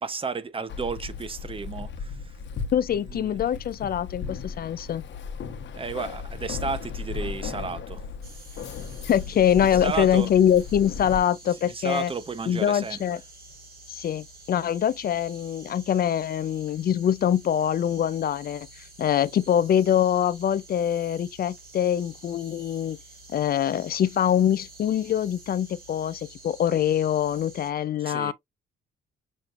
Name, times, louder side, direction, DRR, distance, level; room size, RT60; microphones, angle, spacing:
voice 1, 0.0-2.1 3.1-3.4 5.8-8.1 9.8-10.3 11.7-13.0 28.0-28.3, right 4 dB, 25° right, 0.9 m, -32 dB
Keys jangling, 0.7-11.2, left 5 dB, 65° left, 1.1 m, -36 dB
voice 2, 2.7-5.0 9.1-12.1 12.5-13.2 13.9-23.0 23.3-28.3, left 9 dB, 50° left, 0.5 m, -24 dB
sound 1, 8.2-27.7, right 2 dB, 50° right, 4.2 m, -49 dB
6.6 x 3.2 x 2.5 m
cardioid pair, 90°, 20 cm